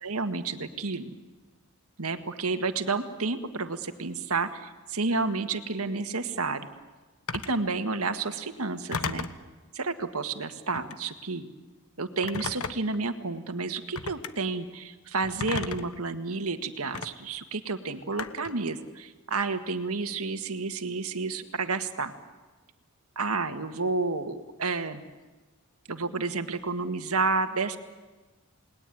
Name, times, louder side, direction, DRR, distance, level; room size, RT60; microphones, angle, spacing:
voice 1, 0.0-1.1 2.0-6.7 7.3-9.3 9.7-11.5 12.0-22.1 23.2-25.0 25.9-27.8, right 3 dB, 80° right, 8 dB, 1.8 m, -30 dB
Telephone, 7.3-7.6 8.9-9.4 10.7-11.0 12.2-13.0 13.9-14.3 15.4-16.0 16.9-17.1 18.2-18.6, left 4 dB, 80° left, 1.3 m, -34 dB
29.5 x 20.5 x 9.4 m, 1.3 s
head